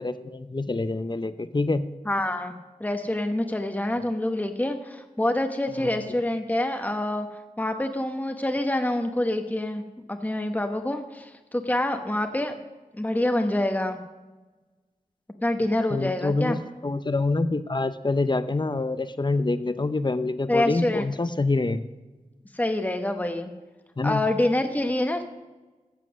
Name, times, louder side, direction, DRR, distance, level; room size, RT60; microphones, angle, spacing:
voice 1, 0.0-1.8 5.7-5.9 15.9-21.8 24.0-24.2, left 3 dB, 30° left, 12 dB, 0.7 m, -26 dB
voice 2, 2.1-2.5 2.8-7.3 7.6-9.8 10.1-12.5 12.9-14.0 15.4-16.6 20.5-21.0 22.5-23.5 24.0-25.2, left 1 dB, 10° left, 6 dB, 1.0 m, -26 dB
14.0 x 7.6 x 6.2 m, 1.2 s
wide cardioid pair, 65°, 14 cm